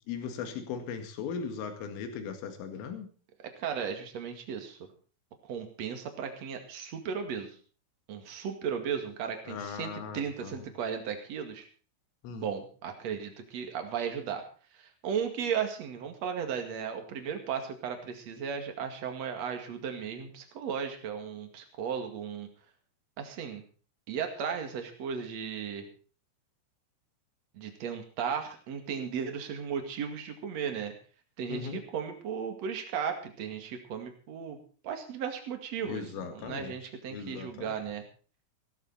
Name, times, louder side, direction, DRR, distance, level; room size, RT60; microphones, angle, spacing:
voice 1, 0.1-3.1 9.5-10.7 12.2-12.5 31.5-31.8 35.8-36.7 37.1-37.9, left 6 dB, 80° left, 6 dB, 4.5 m, -38 dB
voice 2, 3.6-4.8 5.4-7.6 8.1-11.7 12.3-14.4 14.7-22.5 23.2-23.6 24.1-25.9 27.5-30.9 31.4-34.6 34.8-38.0, right 7 dB, 45° right, 6 dB, 2.4 m, -35 dB
16.5 x 14.0 x 4.2 m, 0.39 s
omnidirectional pair, 5.7 m